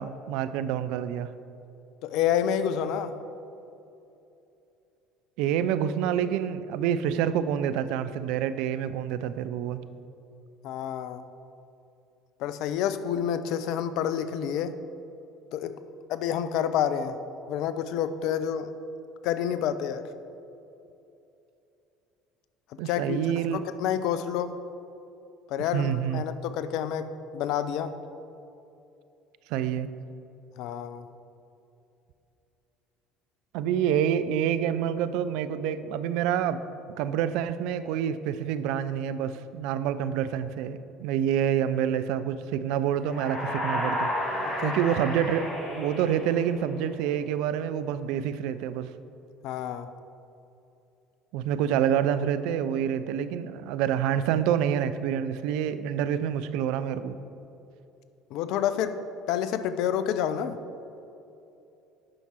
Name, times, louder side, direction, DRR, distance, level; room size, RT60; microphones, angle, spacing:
voice 1, 0.0-1.3 5.4-9.8 22.8-23.6 25.7-26.2 29.5-29.9 33.5-36.6 37.0-48.9 51.3-57.2, right 9 dB, 65° right, 13 dB, 0.3 m, -27 dB
voice 2, 2.0-3.1 10.6-11.3 12.4-14.7 15.5-15.7 16.1-17.2 17.5-18.7 19.2-20.0 22.9-23.2 23.5-24.6 25.5-27.1 27.3-27.9 30.6-31.1 44.6-44.7 49.4-49.9 58.3-59.0 59.3-60.6, left 9 dB, 60° left, 12 dB, 0.4 m, -28 dB
sound 1, 43.0-46.9, left 1 dB, 35° left, 1.8 m, -32 dB
9.0 x 5.8 x 4.4 m, 2.8 s
hypercardioid pair, 65°, 0 cm